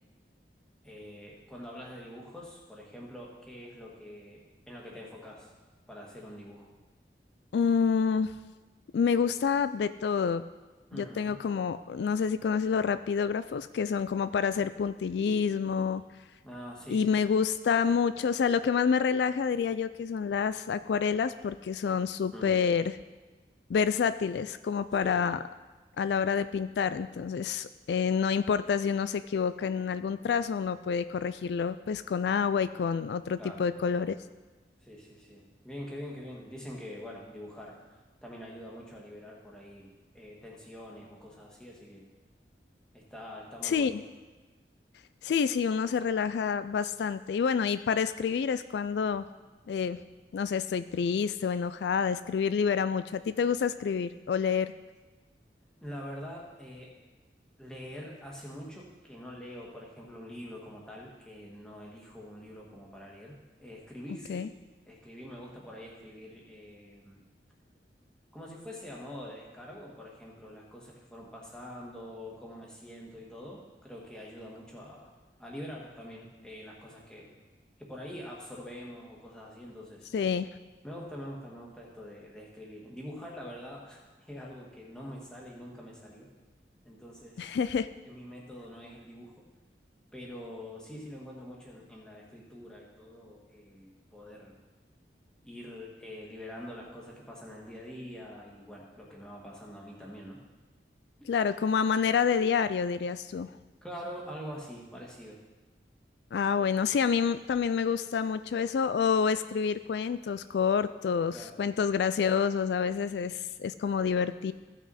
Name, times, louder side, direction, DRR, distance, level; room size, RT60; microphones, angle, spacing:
voice 1, 0.8-5.5 5.9-6.7 10.9-11.4 16.4-17.2 22.3-22.6 25.0-25.2 26.0-26.1 33.4-33.7 34.8-37.8 38.2-42.1 42.9-43.9 55.8-56.9 57.6-64.5 64.9-67.2 68.3-75.1 75.4-77.3 77.8-80.1 80.8-86.3 86.8-87.6 88.0-89.3 90.1-94.6 95.4-100.4 103.8-105.4 111.3-111.6, equal, 5° left, -3 dB, 1.7 m, -45 dB
voice 2, 7.5-8.3 8.9-10.4 10.9-16.0 16.9-22.9 23.7-25.4 26.0-34.2 43.6-44.0 45.2-49.3 49.7-50.0 50.3-54.7 64.3-64.5 80.1-80.5 87.4-87.9 101.3-103.5 106.3-114.5, left 6 dB, 75° left, 13 dB, 0.3 m, -28 dB
15.5 x 6.0 x 4.1 m, 1.2 s
head